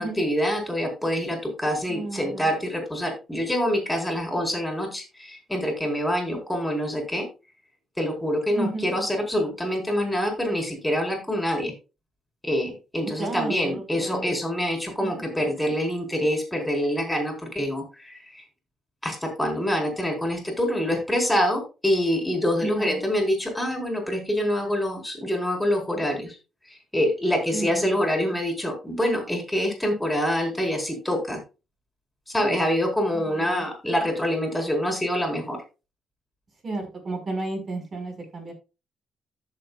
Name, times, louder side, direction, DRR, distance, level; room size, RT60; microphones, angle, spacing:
voice 1, 0.0-7.3 8.0-11.7 12.4-18.4 19.0-26.4 26.9-31.4 32.3-35.6, equal, 5° left, 2 dB, 4.4 m, -26 dB
voice 2, 1.9-2.5 8.5-8.9 13.2-14.4 15.0-15.1 22.7-23.0 27.5-28.0 33.1-33.7 36.6-38.5, right 2 dB, 45° right, 3 dB, 5.1 m, -33 dB
14.0 x 7.1 x 2.4 m, 0.29 s
cardioid pair, 90°, 0 cm